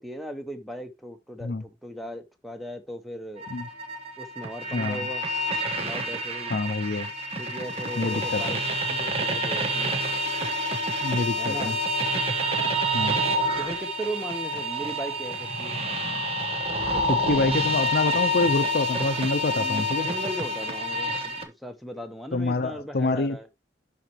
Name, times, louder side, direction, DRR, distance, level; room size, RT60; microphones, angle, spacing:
voice 1, 0.0-3.4 4.2-5.2 5.8-6.5 7.4-8.6 8.9-10.0 11.4-11.8 13.6-15.7 19.5-23.5, equal, ahead, 1.0 m, -37 dB
sound 1, 3.4-21.4, equal, 35° right, 1.2 m, -28 dB
voice 2, 6.5-7.1 8.0-8.6 11.0-11.8 12.9-13.2 17.1-20.1 22.3-23.4, left 3 dB, 60° left, 0.6 m, -26 dB
11.5 x 4.4 x 2.9 m
head